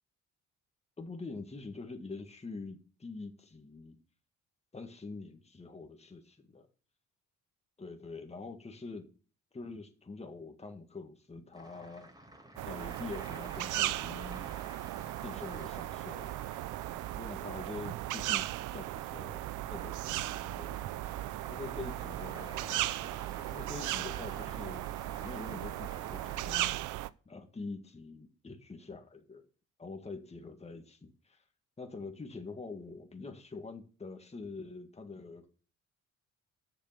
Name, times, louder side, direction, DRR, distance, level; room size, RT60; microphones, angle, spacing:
voice 1, 1.0-4.0 4.7-6.7 7.8-9.1 9.5-12.1 12.7-14.5 15.2-16.5 17.2-20.9 21.5-22.9 23.5-24.8 25.2-26.8 27.3-29.4 29.8-31.4 31.8-35.4, left 3 dB, 20° left, 4 dB, 1.8 m, -45 dB
sound 1, 11.5-26.6, right 1 dB, 15° right, 3.9 m, -52 dB
sound 2, 12.6-27.1, right 16 dB, 85° right, 0.5 m, -37 dB
8.4 x 6.8 x 6.8 m, 0.38 s
cardioid pair, 90°, 30 cm